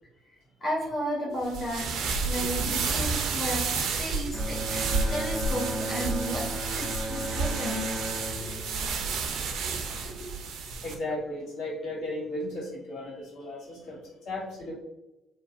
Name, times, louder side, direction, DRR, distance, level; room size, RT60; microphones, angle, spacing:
voice 1, 0.6-2.0 2.2-7.9, equal, 40° left, -3 dB, 0.8 m, -33 dB
sound 1, 1.4-10.9, right 4 dB, 65° right, 0.3 m, -30 dB
Bowed string instrument, 4.3-9.8, equal, 5° right, 0.4 m, -36 dB
voice 2, 10.8-14.0 14.2-14.7, left 1 dB, 75° left, -9 dB, 1.4 m, -35 dB
3.1 x 2.0 x 2.3 m, 0.97 s
hypercardioid pair, 50°, 0 cm